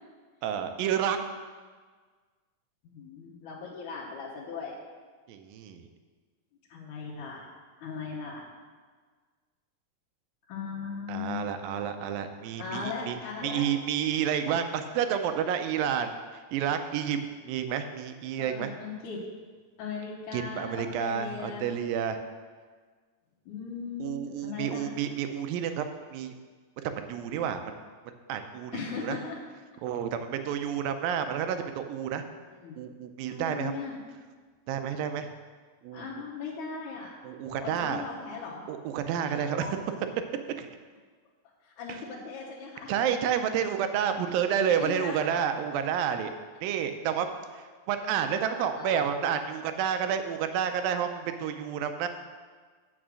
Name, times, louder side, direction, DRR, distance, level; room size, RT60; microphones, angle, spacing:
voice 1, 0.4-1.2 5.3-5.9 11.1-13.2 13.4-16.2 16.5-17.2 17.4-18.7 20.3-22.2 24.0-25.8 26.1-26.3 26.8-27.7 28.3-29.2 29.8-32.2 32.8-33.7 34.7-35.3 35.8-36.2 37.2-38.0 38.7-39.7 40.6-40.7 42.9-46.3 46.6-47.3 47.5-52.1, right 8 dB, 85° right, 8 dB, 2.4 m, -30 dB
voice 2, 2.8-4.8 6.7-7.5 7.8-8.4 10.5-11.4 12.6-13.7 18.4-19.2 19.8-21.7 23.5-25.0 28.7-29.4 32.5-32.8 33.3-34.0 35.9-37.1 37.6-38.6 39.4-39.8 41.6-43.0 44.8-45.3 48.5-49.2, left 5 dB, 65° left, -7 dB, 2.4 m, -38 dB
8.8 x 6.0 x 6.2 m, 1.5 s
omnidirectional pair, 4.0 m